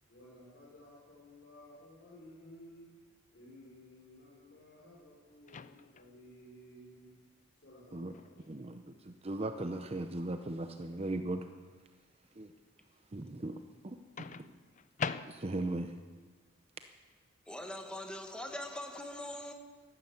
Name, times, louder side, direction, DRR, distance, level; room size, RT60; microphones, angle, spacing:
voice 1, 0.1-2.9 3.3-7.1 7.6-8.6, left 1 dB, 55° left, 4.9 m, -55 dB
Microwave oven, 5.5-6.2 8.1-8.4 14.2-15.8, left 5 dB, 35° left, 0.5 m, -41 dB
voice 2, 8.5-11.5 12.4-12.5 13.1-13.6 13.8-14.0 15.3-15.9, right 2 dB, 30° right, 0.7 m, -37 dB
voice 3, 17.5-19.5, left 1 dB, 5° left, 1.5 m, -42 dB
13.5 x 13.0 x 8.0 m
head